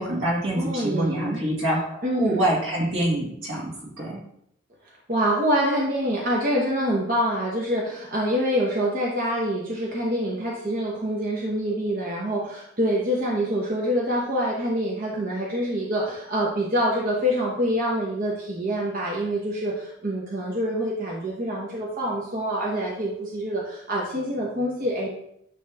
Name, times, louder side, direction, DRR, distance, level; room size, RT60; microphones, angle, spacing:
voice 1, 0.0-4.2, right 1 dB, 75° right, -2 dB, 1.9 m, -26 dB
voice 2, 0.5-1.4 2.0-2.4 5.1-25.1, equal, 45° right, -4 dB, 1.0 m, -26 dB
9.5 x 3.2 x 3.5 m, 0.73 s
head